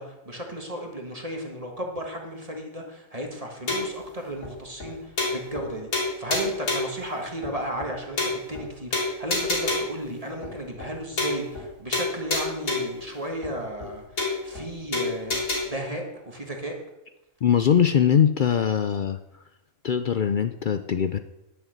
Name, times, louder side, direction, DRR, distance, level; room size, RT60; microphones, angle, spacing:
voice 1, 0.0-16.8, right 1 dB, 25° right, 1 dB, 1.7 m, -34 dB
sound 1, 3.7-4.0 4.4-4.5 4.8-4.9 5.2-5.7 5.9-7.0 7.4-7.5 7.8-7.9 8.2-8.6 8.9-10.0 10.4-10.5 10.8-10.9 11.2-11.7 11.9-13.0 13.4-13.5 13.8-13.9 14.2-14.6 14.9-15.6, left 2 dB, 90° left, 3.5 m, -27 dB
voice 2, 17.4-19.2 19.8-21.2, left 8 dB, 60° left, 10 dB, 0.5 m, -21 dB
10.5 x 6.6 x 7.9 m, 0.92 s
omnidirectional pair, 1.4 m